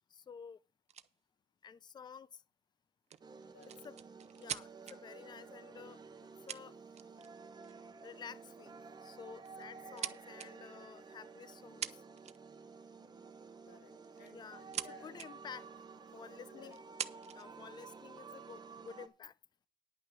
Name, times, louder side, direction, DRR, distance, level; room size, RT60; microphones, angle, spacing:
voice 1, 0.1-0.6 1.6-2.4 3.8-4.0 4.4-6.0 6.5-6.8 8.0-12.0 14.3-14.6 14.9-15.7 16.1-16.8 17.3-19.3, left 6 dB, 25° left, 0.5 m, -51 dB
sound 1, 0.9-1.1 3.1-5.0 6.1-6.2 6.5-7.3 7.6-7.9 8.8-9.0 9.4-10.5 11.5-11.6 11.8-12.6 14.0-14.9 15.1-15.3 16.0-16.1 16.7-17.5 18.2-18.9, right 9 dB, 40° right, 0.7 m, -43 dB
sound 2, 3.2-19.1, right 5 dB, 25° right, 1.2 m, -53 dB
voice 2, 3.5-3.8 9.5-9.8 13.6-15.2 16.5-16.7, left 4 dB, 80° left, 3.2 m, -59 dB
10.5 x 5.6 x 7.7 m
cardioid pair, 110°, 17 cm